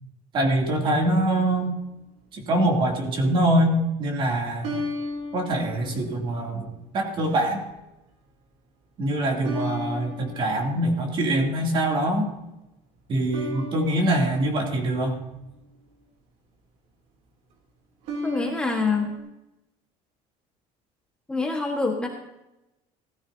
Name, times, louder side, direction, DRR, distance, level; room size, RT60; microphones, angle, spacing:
voice 1, 0.3-1.7 2.3-4.8 5.3-7.6 9.0-12.3 13.1-15.2, right 1 dB, 35° right, 1 dB, 2.9 m, -24 dB
sound 1, 1.6-1.7 4.6-6.7 7.2-7.7 9.4-11.4 13.3-15.8 18.0-19.2, left 2 dB, 60° right, 3.0 m, -36 dB
voice 2, 18.2-19.1 21.3-22.1, left 3 dB, 5° left, 0 dB, 1.4 m, -25 dB
17.0 x 14.5 x 2.8 m, 0.93 s
cardioid pair, 165°, 14 cm